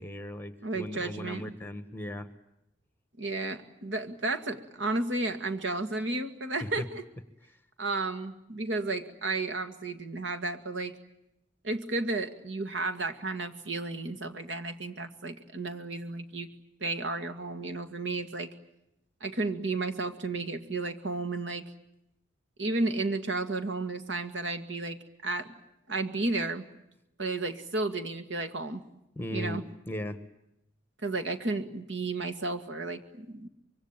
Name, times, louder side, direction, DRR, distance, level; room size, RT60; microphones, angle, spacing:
voice 1, 0.0-2.3 6.6-6.8 29.1-30.2, left 1 dB, 10° left, 10 dB, 1.5 m, -37 dB
voice 2, 0.6-1.5 3.2-7.0 7.8-10.9 11.6-16.5 16.8-18.5 19.2-21.6 22.6-25.0 25.2-25.5 25.9-26.6 27.2-28.8 29.3-29.6 31.0-33.5, right 2 dB, 75° right, 8 dB, 2.2 m, -32 dB
25.0 x 23.5 x 9.1 m, 0.84 s
head